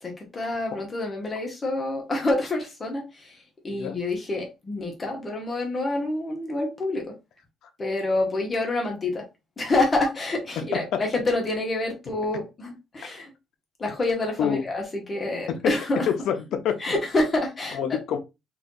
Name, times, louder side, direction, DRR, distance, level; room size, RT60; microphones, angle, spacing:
voice 1, 0.0-7.1 7.8-9.2 9.6-13.3 13.8-16.1 16.8-18.0, left 2 dB, 20° left, 1.0 m, -27 dB
voice 2, 16.3-16.8 17.7-18.2, left 8 dB, 60° left, 0.7 m, -26 dB
3.2 x 2.6 x 3.8 m
cardioid pair, 165°, 0 cm